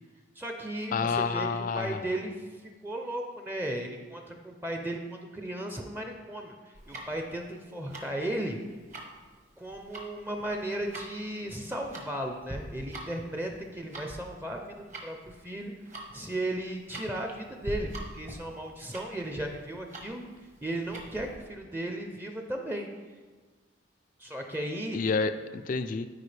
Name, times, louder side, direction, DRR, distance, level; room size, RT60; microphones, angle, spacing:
voice 1, 0.4-8.6 9.6-20.2 20.6-22.9 24.2-25.0, right 1 dB, 10° right, 3 dB, 0.5 m, -36 dB
voice 2, 0.9-2.1 24.9-26.1, left 4 dB, 45° left, 10 dB, 0.3 m, -29 dB
Tick-tock, 6.7-21.4, right 1 dB, 40° right, 1.2 m, -44 dB
12.5 x 5.1 x 3.3 m, 1.4 s
head